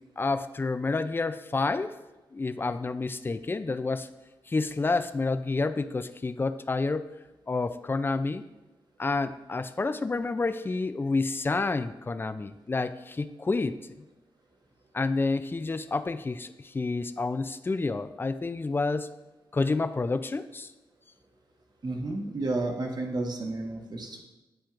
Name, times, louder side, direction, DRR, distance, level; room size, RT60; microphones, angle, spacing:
voice 1, 0.2-1.9 2.3-4.1 4.5-7.1 7.5-8.4 9.0-13.8 14.9-19.1 19.5-20.7, left 3 dB, 25° left, 11 dB, 0.4 m, -29 dB
voice 2, 21.8-24.2, right 2 dB, 50° right, 2 dB, 1.1 m, -31 dB
10.0 x 4.4 x 2.5 m, 1.0 s
cardioid pair, 70°, 9 cm